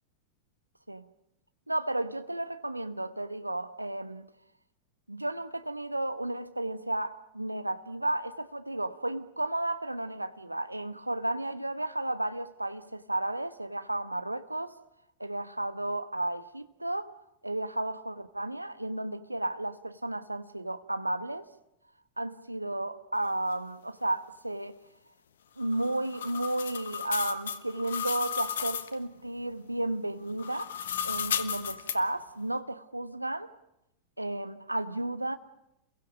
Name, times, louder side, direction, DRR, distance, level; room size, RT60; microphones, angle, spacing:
voice 1, 1.7-4.3 5.1-14.8 15.2-17.1 17.4-21.5 22.2-24.8 25.6-30.7 31.0-33.5 34.2-35.4, right 1 dB, 85° right, 1.2 m, -33 dB
sound 1, 25.6-28.9 30.3-32.0, left 8 dB, 65° left, 1.2 m, -34 dB
29.5 x 22.5 x 5.2 m
figure-of-eight pair, 90°, 0 cm